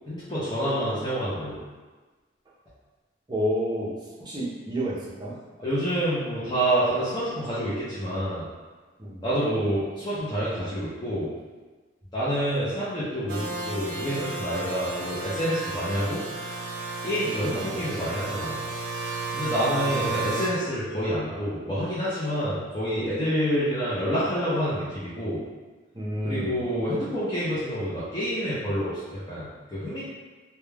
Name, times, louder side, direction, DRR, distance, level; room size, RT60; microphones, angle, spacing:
voice 1, 0.1-1.6 5.6-8.5 9.2-11.3 12.1-16.2 17.0-18.6 19.3-25.4 26.2-30.0, equal, 20° left, -12 dB, 0.5 m, -28 dB
voice 2, 3.3-3.9 4.2-5.4 9.0-9.2 17.5-17.8 19.8-19.9 25.9-26.5, equal, 25° right, -6 dB, 0.6 m, -30 dB
sound 1, 13.3-20.5, right 3 dB, 80° right, 0.5 m, -33 dB
2.3 x 2.2 x 3.2 m, 1.3 s
head